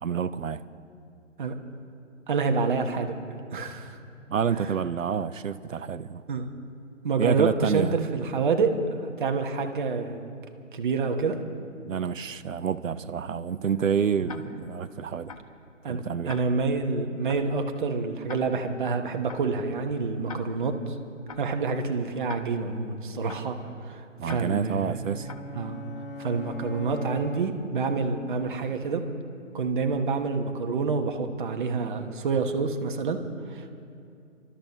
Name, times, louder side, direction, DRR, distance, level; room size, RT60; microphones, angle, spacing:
voice 1, 0.0-0.6 4.3-6.2 7.2-8.0 11.9-15.3 15.8-16.4 24.2-25.3, right 7 dB, 80° right, 14 dB, 0.6 m, -28 dB
voice 2, 2.3-3.1 3.5-4.0 4.6-4.7 6.3-6.5 7.0-8.7 9.2-10.2 10.7-11.4 15.8-16.0 16.3-20.8 21.4-23.6 23.8-25.0 25.5-25.8 26.2-29.0 29.5-33.2 33.5-33.7, right 4 dB, 40° right, 5 dB, 1.2 m, -27 dB
Tick-tock, 14.3-14.4 15.3-15.4 16.3-16.4 17.3-17.4 18.3-18.4 19.3-19.4 20.3-20.4 21.3-21.4 22.3-22.4 23.3-23.4 24.3-24.4 25.3-25.4, left 5 dB, 30° left, 0.7 m, -40 dB
sound 1, 24.5-28.0, left 2 dB, 45° left, 1.0 m, -41 dB
29.5 x 12.5 x 3.1 m, 2.4 s
figure-of-eight pair, 140°, 38 cm